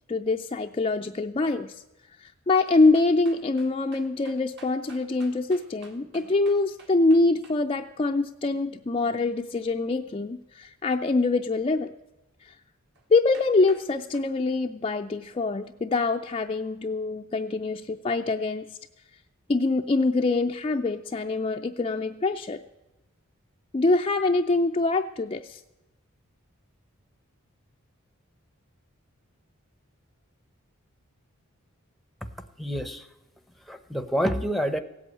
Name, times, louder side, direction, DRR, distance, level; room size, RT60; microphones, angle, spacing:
voice 1, 0.1-1.7 2.2-11.9 12.5-12.6 13.1-18.7 19.5-22.6 23.7-25.6, left 3 dB, 25° left, 4 dB, 0.4 m, -24 dB
sound 1, 2.7-7.6 13.0-13.1 13.3-13.9 14.1-14.3, right 3 dB, 55° right, 2.0 m, -51 dB
voice 2, 32.6-33.1 33.7-34.8, equal, ahead, 10 dB, 0.7 m, -28 dB
16.5 x 8.3 x 8.4 m, 1.0 s
head